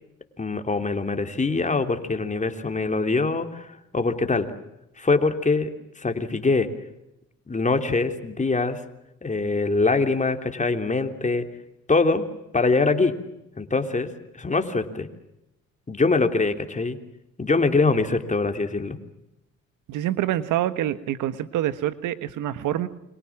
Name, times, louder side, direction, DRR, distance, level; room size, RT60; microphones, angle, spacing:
voice 1, 0.4-4.5 5.0-5.7 6.0-6.7 7.5-8.8 9.2-11.5 11.9-12.2 12.5-13.1 13.6-14.1 14.4-15.1 15.9-17.0 17.4-19.0, left 3 dB, 25° left, 7 dB, 3.3 m, -23 dB
voice 2, 19.9-22.9, right 12 dB, 90° right, 14 dB, 1.6 m, -26 dB
29.5 x 24.5 x 7.4 m, 0.89 s
cardioid pair, 90°, 30 cm